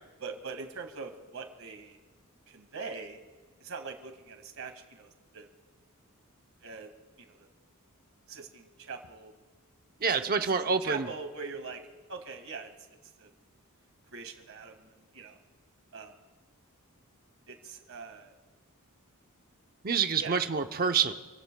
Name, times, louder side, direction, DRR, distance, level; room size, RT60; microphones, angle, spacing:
voice 1, 0.2-2.0 2.5-3.2 3.6-5.5 6.6-6.9 7.2-7.5 8.3-9.3 10.1-10.3 10.8-11.8 12.1-12.7 13.2-13.3 14.1-15.4 15.9-16.1 17.5-18.3 20.2-20.4, right 5 dB, 70° right, 5 dB, 1.9 m, -42 dB
voice 2, 10.0-11.1 19.8-21.1, right 5 dB, 45° right, 7 dB, 0.8 m, -27 dB
27.0 x 16.0 x 2.3 m, 1.3 s
head